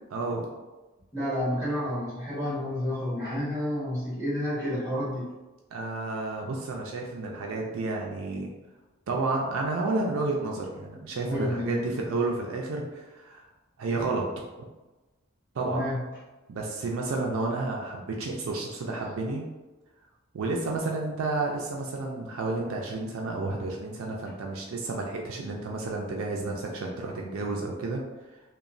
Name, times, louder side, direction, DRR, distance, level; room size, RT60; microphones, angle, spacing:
voice 1, 0.1-0.5 5.7-8.5 9.1-13.4 13.8-14.3 15.5-15.8 16.5-19.4 20.3-28.0, right 3 dB, 75° right, 0 dB, 0.4 m, -31 dB
voice 2, 1.1-5.3 11.3-11.9 15.7-16.1, left 1 dB, 15° right, -9 dB, 1.4 m, -30 dB
3.0 x 2.1 x 2.5 m, 1.1 s
head